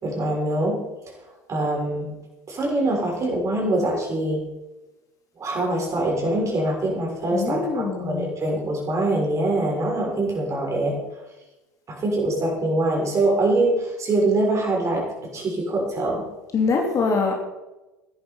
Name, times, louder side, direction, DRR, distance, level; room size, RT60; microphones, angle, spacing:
voice 1, 0.0-0.8 1.1-1.2 1.5-2.1 2.5-4.4 5.4-11.0 11.9-15.0 15.3-16.2, right 2 dB, 35° right, -1 dB, 6.4 m, -24 dB
voice 2, 7.2-8.3 16.5-17.3, left 4 dB, 35° left, 2 dB, 2.9 m, -23 dB
15.5 x 11.0 x 5.6 m, 1.1 s
figure-of-eight pair, 70°, 9 cm